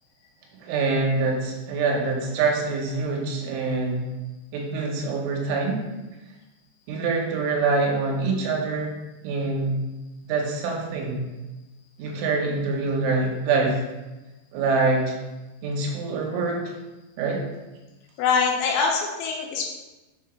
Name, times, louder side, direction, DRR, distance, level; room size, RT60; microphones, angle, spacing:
voice 1, 0.6-4.0 4.5-5.8 6.9-8.9 9.2-9.8 10.3-11.2 12.0-13.8 14.5-15.1 15.6-16.7 17.2-17.4, right 3 dB, 85° right, 0 dB, 3.4 m, -25 dB
voice 2, 18.2-19.6, left 5 dB, 85° left, 0 dB, 2.9 m, -23 dB
7.2 x 2.9 x 4.8 m, 1.1 s
omnidirectional pair, 5.5 m